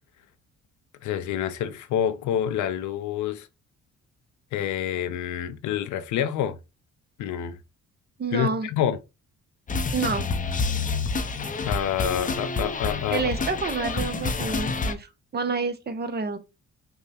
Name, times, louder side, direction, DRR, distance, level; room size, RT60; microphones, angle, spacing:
voice 1, 1.0-3.5 4.5-6.6 7.2-7.6 8.3-9.0 11.6-13.5, left 10 dB, 75° left, 0.5 m, -27 dB
voice 2, 8.2-8.7 9.9-10.3 13.1-16.4, right 4 dB, 35° right, 0.6 m, -28 dB
sound 1, 9.7-14.9, left 4 dB, 25° left, 0.5 m, -28 dB
5.3 x 2.1 x 2.8 m
cardioid pair, 90°, 30 cm